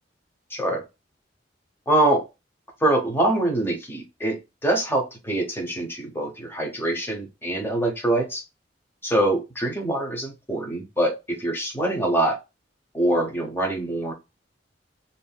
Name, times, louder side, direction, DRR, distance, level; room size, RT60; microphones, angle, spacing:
voice 1, 0.5-0.8 1.9-2.2 2.8-8.4 9.0-12.4 12.9-14.1, right 1 dB, 15° left, 2 dB, 0.9 m, -24 dB
2.7 x 2.5 x 2.2 m, 0.25 s
head